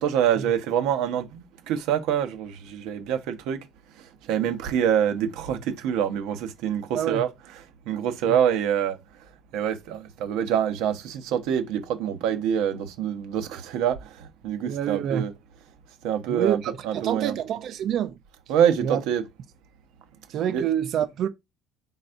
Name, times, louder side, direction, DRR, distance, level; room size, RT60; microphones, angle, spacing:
voice 1, 0.0-3.6 4.3-7.3 7.9-9.0 9.5-15.3 16.0-17.3 18.5-19.2 20.5-20.6, right 9 dB, 75° right, 0.9 m, -25 dB
voice 2, 14.6-15.3 16.3-18.2 18.8-19.0 20.3-21.3, right 9 dB, 45° right, 0.5 m, -27 dB
4.4 x 4.0 x 2.5 m
cardioid pair, 165°, 0 cm